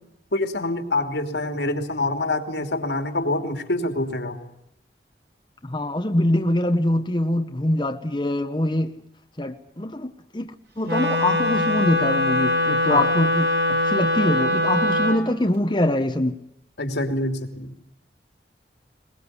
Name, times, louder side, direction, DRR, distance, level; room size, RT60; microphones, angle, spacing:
voice 1, 0.3-4.4 12.9-13.1 16.8-17.7, left 2 dB, 85° left, 3.0 m, -26 dB
voice 2, 5.6-8.9 9.4-16.4, left 1 dB, 25° left, 1.1 m, -24 dB
Wind instrument woodwind instrument, 10.8-15.2, left 1 dB, 70° right, 5.2 m, -22 dB
22.0 x 21.0 x 8.2 m
head